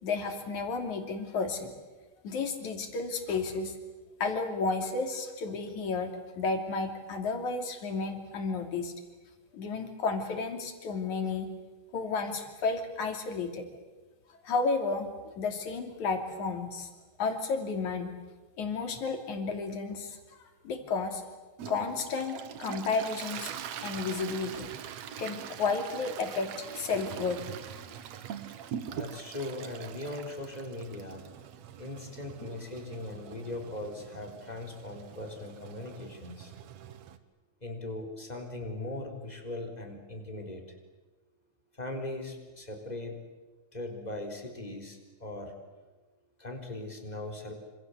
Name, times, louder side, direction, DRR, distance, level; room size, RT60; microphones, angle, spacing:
voice 1, 0.0-1.7 2.2-3.8 4.2-8.9 9.5-11.5 11.9-13.7 14.4-15.1 15.4-16.9 17.2-18.1 18.6-20.2 20.6-21.2 21.7-23.5 23.8-24.7 25.2-27.4, left 4 dB, 85° left, 5 dB, 4.4 m, -32 dB
Toilet flush, 21.6-37.2, right 9 dB, 65° right, 2.4 m, -43 dB
voice 2, 28.9-31.2 31.8-36.5 37.6-40.6 41.8-43.2 43.7-45.5 46.4-47.5, left 2 dB, 15° left, 3 dB, 4.1 m, -39 dB
27.5 x 26.5 x 8.1 m, 1.2 s
omnidirectional pair, 3.3 m